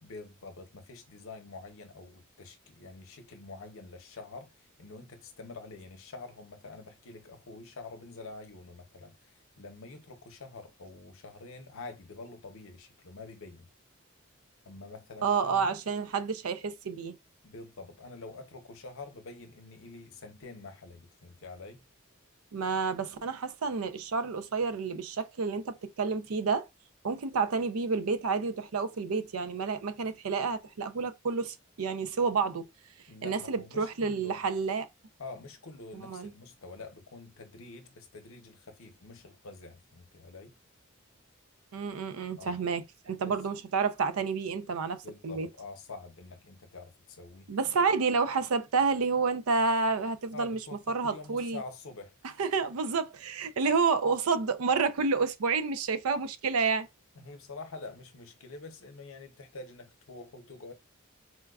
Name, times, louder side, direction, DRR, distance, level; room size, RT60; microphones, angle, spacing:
voice 1, 0.0-13.7 14.6-15.7 17.4-21.8 33.1-34.4 35.2-40.6 42.4-42.6 43.1-43.4 45.0-47.5 50.3-52.1 57.1-60.7, left 3 dB, 65° left, 0.7 m, -46 dB
voice 2, 15.2-17.2 22.5-26.7 27.0-32.7 33.2-34.9 35.9-36.3 41.7-45.5 47.5-50.6 50.9-51.6 52.4-56.9, right 4 dB, 80° right, 0.5 m, -29 dB
4.4 x 2.2 x 2.3 m
head